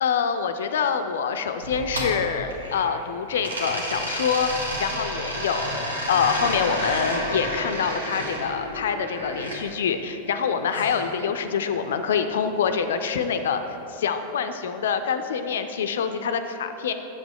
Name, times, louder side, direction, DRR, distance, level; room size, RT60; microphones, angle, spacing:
voice 1, 0.0-13.6 13.9-16.9, left 6 dB, 60° left, 8 dB, 0.4 m, -26 dB
sound 1, 1.6-3.0 3.4-9.6 10.7-11.8, right 1 dB, 75° right, 1.2 m, -31 dB
7.8 x 7.0 x 3.6 m, 3.0 s
figure-of-eight pair, 90°, 0 cm